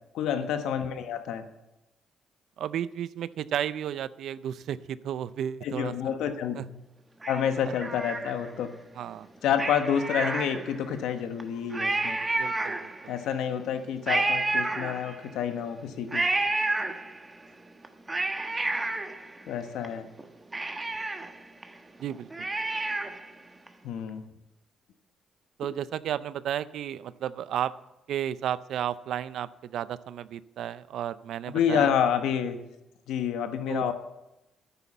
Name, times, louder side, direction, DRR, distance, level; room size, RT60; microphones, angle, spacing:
voice 1, 0.1-1.4 5.6-6.8 7.3-8.7 9.4-12.2 13.1-16.2 19.5-20.1 23.8-24.2 31.5-32.6 33.1-33.9, left 8 dB, 85° left, 8 dB, 1.1 m, -28 dB
voice 2, 2.6-5.9 6.6-6.7 9.0-9.3 12.4-13.1 22.0-22.5 25.6-27.7 28.1-31.9 33.7-33.9, right 10 dB, 75° right, 16 dB, 0.5 m, -33 dB
Cat, 7.2-8.7 9.5-10.9 11.4-11.5 11.7-13.2 14.1-15.4 16.1-17.4 17.8-19.9 20.2-20.3 20.5-23.3 23.7-23.8, right 2 dB, 20° right, 1.2 m, -30 dB
9.9 x 9.7 x 7.2 m, 0.94 s
cardioid pair, 90°, 0 cm